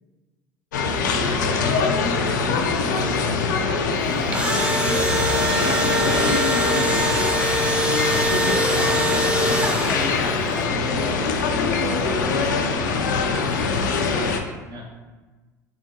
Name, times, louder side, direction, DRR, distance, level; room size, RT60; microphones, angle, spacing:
sound 1, 0.7-14.4, left 4 dB, 85° left, 0.4 m, -23 dB
voice 1, 1.0-3.1 5.5-7.0 14.6-14.8, equal, 50° right, -2 dB, 1.1 m, -33 dB
Engine / Drill, 4.1-10.3, right 1 dB, 10° right, 0.5 m, -23 dB
voice 2, 4.1-4.6 8.4-8.9 9.9-13.8, equal, 70° right, -6 dB, 1.4 m, -36 dB
3.7 x 3.5 x 2.8 m, 1.3 s
hypercardioid pair, 70°, 10 cm